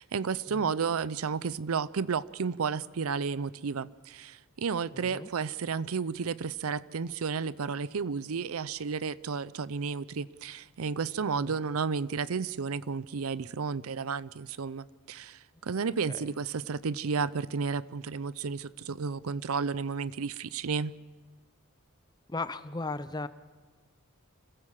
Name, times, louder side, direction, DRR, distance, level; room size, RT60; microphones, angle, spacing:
voice 1, 0.0-20.9, right 5 dB, 85° right, 0.6 m, -32 dB
voice 2, 4.9-5.3 11.3-11.6 16.1-16.3 22.3-23.3, left 3 dB, 20° left, 0.6 m, -37 dB
26.0 x 16.5 x 7.4 m
head